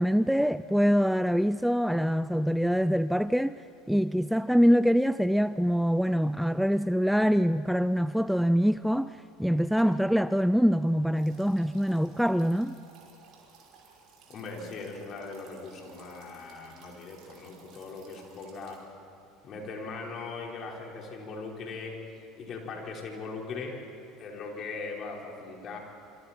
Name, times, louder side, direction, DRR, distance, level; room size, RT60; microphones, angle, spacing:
voice 1, 0.0-3.5 3.9-12.7, equal, ahead, 0.4 m, -24 dB
sound 1, 11.1-18.8, right 5 dB, 55° right, 5.6 m, -57 dB
voice 2, 14.3-18.8 19.4-23.7 24.2-25.8, left 4 dB, 45° left, 4.8 m, -40 dB
27.0 x 26.5 x 4.5 m
hypercardioid pair, 70°, 0 cm